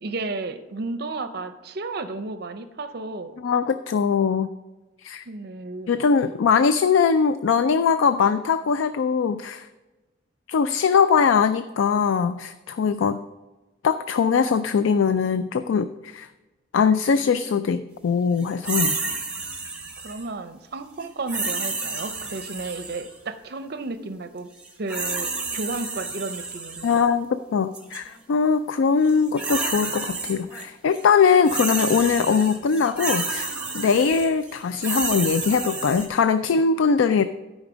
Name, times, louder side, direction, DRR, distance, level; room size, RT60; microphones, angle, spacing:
voice 1, 0.0-3.4 5.3-6.0 20.0-24.5 24.8-27.0, right 3 dB, 55° right, 10 dB, 0.5 m, -33 dB
voice 2, 3.4-4.5 5.0-5.2 5.9-9.7 10.5-13.2 13.8-16.3 16.7-19.0 26.8-33.5 33.7-37.2, left 6 dB, 85° left, 12 dB, 0.4 m, -21 dB
sound 1, 18.6-20.2 21.3-23.1 24.6-27.0 27.7-28.0 29.0-30.6 30.9-36.1, right 3 dB, 5° right, 1.2 m, -30 dB
12.5 x 5.2 x 5.0 m, 1.1 s
head